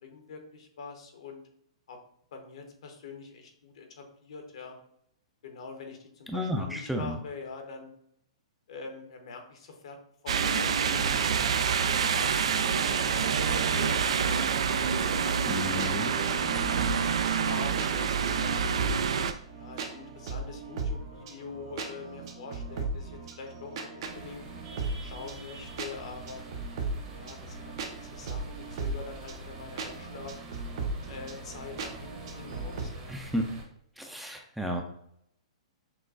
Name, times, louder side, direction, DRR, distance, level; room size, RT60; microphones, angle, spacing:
voice 1, 0.0-1.4 1.9-2.0 2.3-4.8 5.4-7.9 8.7-10.0 10.2-14.4 15.2-18.7 19.5-24.4 25.0-26.4 27.1-30.4 31.1-33.1, left 4 dB, 65° left, 4 dB, 0.9 m, -44 dB
voice 2, 6.3-7.2 15.5-16.1 33.1-33.5 34.0-34.8, equal, ahead, 2 dB, 0.4 m, -32 dB
Cars driving slush road, 10.3-19.3, right 6 dB, 70° right, 0.3 m, -27 dB
sound 1, 15.4-32.8, right 3 dB, 55° right, 0.7 m, -38 dB
sound 2, 24.1-33.6, right 2 dB, 35° right, 1.0 m, -46 dB
5.9 x 2.2 x 2.4 m, 0.73 s
hypercardioid pair, 120°, 3 cm